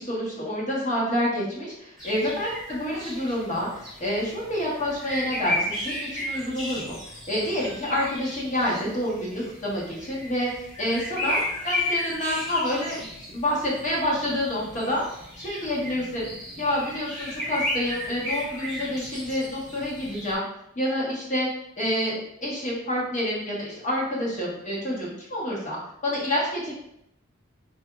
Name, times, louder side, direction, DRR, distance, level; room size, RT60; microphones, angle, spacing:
voice 1, 0.0-15.0 15.4-16.3 16.6-20.4 20.7-21.5 21.8-26.7, left 1 dB, 35° left, -5 dB, 1.1 m, -28 dB
sound 1, 2.0-20.3, left 1 dB, 20° left, 1.3 m, -34 dB
4.9 x 2.5 x 2.3 m, 0.78 s
head